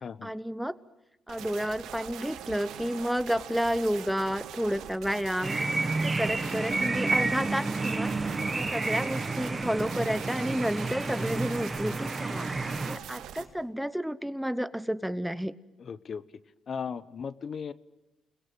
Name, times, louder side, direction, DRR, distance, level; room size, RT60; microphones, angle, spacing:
voice 1, 0.2-0.8 1.3-5.6 5.9-8.2 8.5-12.6 12.9-15.5, equal, ahead, 16 dB, 0.9 m, -31 dB
sound 1, 1.3-13.4, right 10 dB, 80° right, 2.2 m, -43 dB
sound 2, 5.4-13.0, right 3 dB, 20° right, 1.6 m, -30 dB
voice 2, 15.9-16.2 16.7-17.7, left 6 dB, 50° left, 17 dB, 0.9 m, -36 dB
29.5 x 21.5 x 9.1 m, 0.96 s
cardioid pair, 90°, 0 cm